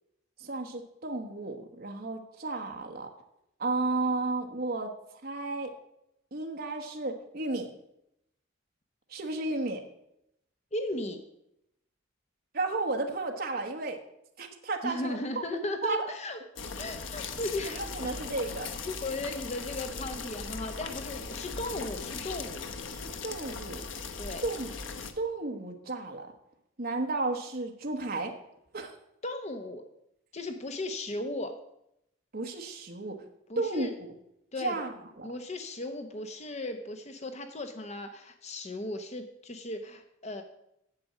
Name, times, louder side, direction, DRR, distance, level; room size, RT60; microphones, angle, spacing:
voice 1, 0.4-3.1 3.6-4.9 5.2-5.7 6.3-7.7 9.1-9.8 12.5-14.0 14.4-15.4 15.8-16.0 17.6-18.7 23.0-23.9 24.4-24.7 25.2-26.3 26.8-28.3 28.7-28.9 32.3-33.2 33.6-34.1 34.6-35.3, right 2 dB, 50° right, 2 dB, 1.2 m, -33 dB
voice 2, 10.7-11.2 14.8-16.4 16.8-18.2 18.9-22.6 24.2-24.4 29.2-29.8 30.3-31.5 33.5-33.9 34.5-34.8 35.2-40.4, left 2 dB, 35° left, 7 dB, 0.8 m, -36 dB
sound 1, 16.6-25.1, left 4 dB, 80° left, 1.0 m, -39 dB
8.8 x 7.7 x 7.2 m, 0.81 s
head